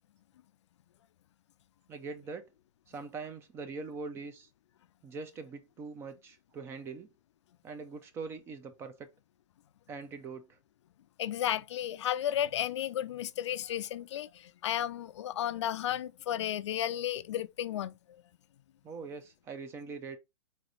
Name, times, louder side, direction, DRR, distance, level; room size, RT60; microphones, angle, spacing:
voice 1, 1.9-2.5 2.9-4.5 5.0-7.1 7.6-9.1 9.9-10.6 18.8-20.2, right 4 dB, 15° right, 0.5 m, -42 dB
voice 2, 11.2-18.0, left 11 dB, 65° left, 0.4 m, -33 dB
4.0 x 3.1 x 4.0 m
hypercardioid pair, 150°, 16 cm